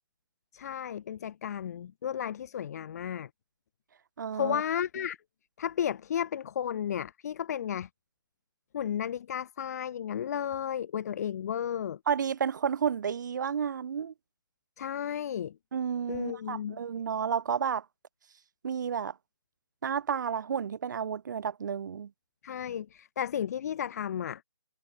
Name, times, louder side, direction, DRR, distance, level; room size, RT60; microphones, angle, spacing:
voice 1, 0.5-3.3 4.3-5.2 5.6-7.9 8.7-12.0 14.8-15.6 16.1-16.8 22.4-24.4, left 9 dB, 40° left, 2.0 m, -33 dB
voice 2, 4.2-4.6 12.1-14.1 15.7-17.8 18.6-19.1 19.8-22.1, right 7 dB, 45° right, 2.6 m, -31 dB
figure-of-eight pair, 145°, 13 cm